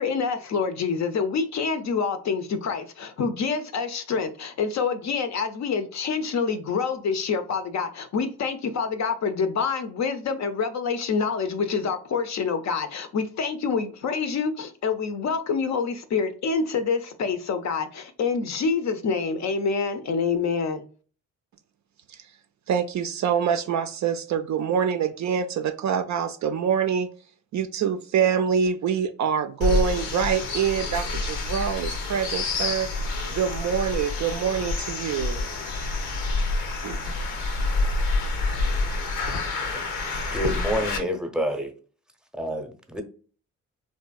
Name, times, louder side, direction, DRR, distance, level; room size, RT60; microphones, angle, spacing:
voice 1, 0.0-20.8, left 5 dB, 45° left, 0.5 m, -27 dB
voice 2, 22.7-27.1 27.5-32.9 33.3-35.4 36.8-37.0, right 7 dB, 50° right, 0.4 m, -25 dB
sound 1, 29.6-41.0, left 3 dB, 80° left, 0.7 m, -28 dB
voice 3, 40.1-41.7 42.4-43.0, equal, ahead, 0.7 m, -28 dB
3.1 x 2.6 x 2.3 m
hypercardioid pair, 45°, 38 cm